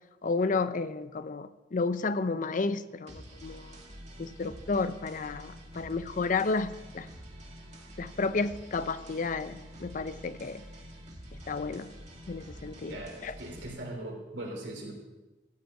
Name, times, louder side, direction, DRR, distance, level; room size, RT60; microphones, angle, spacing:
voice 1, 0.2-3.8 4.2-7.1 8.0-10.6 11.5-11.9 12.3-13.3, left 4 dB, 45° left, 13 dB, 0.5 m, -32 dB
sound 1, 3.1-13.7, equal, 40° right, 2.2 m, -47 dB
voice 2, 12.9-14.9, right 1 dB, 75° right, -1 dB, 3.4 m, -40 dB
13.5 x 5.2 x 9.2 m, 1.1 s
head